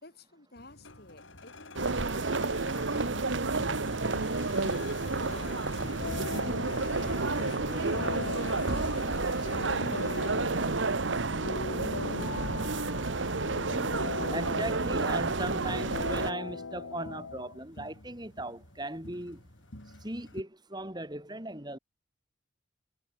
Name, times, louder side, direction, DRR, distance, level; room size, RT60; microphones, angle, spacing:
voice 1, 0.0-2.0 2.2-4.3 5.2-6.8 7.2-9.8, left 2 dB, 50° left, 4.2 m, -52 dB
sound 1, 0.6-20.4, left 2 dB, 65° left, 4.3 m, -48 dB
sound 2, 1.7-16.3, right 3 dB, 65° right, 1.3 m, -30 dB
sound 3, 6.0-17.6, left 4 dB, 85° left, 1.1 m, -40 dB
voice 2, 14.3-19.4 20.0-21.8, right 1 dB, 20° right, 3.6 m, -38 dB
head